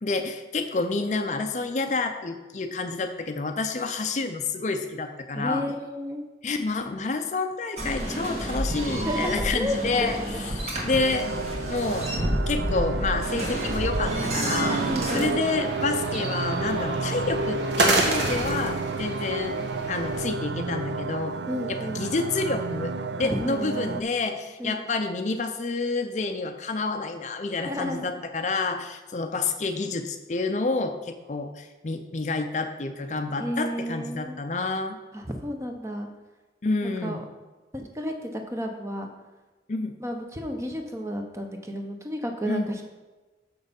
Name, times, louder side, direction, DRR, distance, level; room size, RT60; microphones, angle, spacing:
voice 1, 0.0-5.6 6.4-10.2 10.6-11.3 11.7-12.1 12.5-14.9 15.1-19.5 19.9-21.4 21.7-35.0 36.6-37.2 39.7-39.9 42.5-42.7, left 3 dB, 40° left, 7 dB, 0.5 m, -29 dB
voice 2, 5.3-6.3 8.9-10.4 14.9-15.3 21.5-22.0 23.2-24.0 24.6-24.8 27.6-28.1 33.4-34.4 35.1-36.1 36.8-37.2 37.7-39.1 40.0-42.8, equal, 15° right, 3 dB, 0.8 m, -32 dB
sound 1, 7.8-15.3, right 1 dB, 35° right, 1.5 m, -30 dB
sound 2, 10.9-24.0, right 4 dB, 70° right, 0.4 m, -31 dB
sound 3, 14.1-20.3, right 2 dB, 85° right, 1.5 m, -30 dB
6.9 x 6.4 x 5.2 m, 1.2 s
head